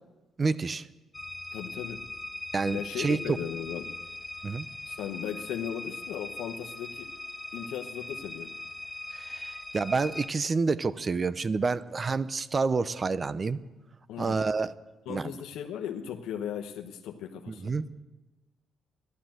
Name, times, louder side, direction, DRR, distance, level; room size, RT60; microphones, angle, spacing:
voice 1, 0.4-0.9 2.5-3.4 4.4-4.7 9.1-13.6 14.2-14.7 15.1-15.3 17.5-17.9, right 4 dB, 35° right, 16 dB, 0.7 m, -28 dB
sound 1, 1.1-10.3, left 2 dB, 15° left, 0.7 m, -40 dB
voice 2, 1.5-2.0 2.7-4.0 4.9-7.1 7.5-8.5 14.1-14.4 15.1-17.7, left 9 dB, 90° left, 3 dB, 1.0 m, -37 dB
14.5 x 12.0 x 7.7 m, 1.1 s
cardioid pair, 90°, 0 cm